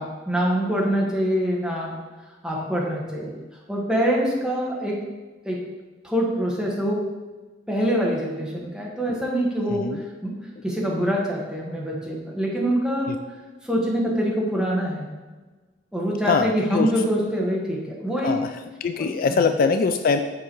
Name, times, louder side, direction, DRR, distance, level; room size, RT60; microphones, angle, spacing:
voice 1, 0.0-1.9 2.4-3.4 3.7-5.0 5.4-5.6 6.0-7.1 7.7-10.3 10.6-13.1 13.6-15.1 15.9-18.3 19.0-19.4, equal, 5° right, -3 dB, 1.3 m, -25 dB
voice 2, 9.7-10.0 13.1-13.2 16.3-16.9 18.2-18.5 18.8-20.2, left 5 dB, 50° left, 8 dB, 0.3 m, -22 dB
6.9 x 4.7 x 4.5 m, 1.3 s
head